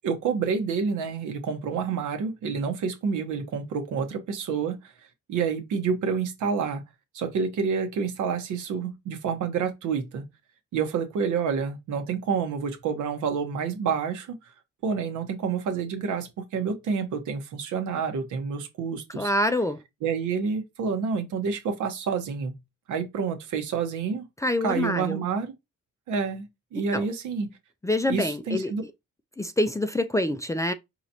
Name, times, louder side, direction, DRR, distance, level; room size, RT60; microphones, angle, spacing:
voice 1, 0.0-4.9 5.3-6.8 7.1-10.2 10.7-14.4 14.8-19.3 20.0-22.6 22.9-24.3 24.6-25.5 26.1-27.5 28.1-28.8, right 6 dB, 80° right, 1.1 m, -28 dB
voice 2, 19.2-19.8 24.4-25.2 26.9-27.0 27.8-28.7 29.4-30.7, left 1 dB, 10° left, 0.4 m, -26 dB
4.8 x 2.9 x 2.7 m
cardioid pair, 90°, 30 cm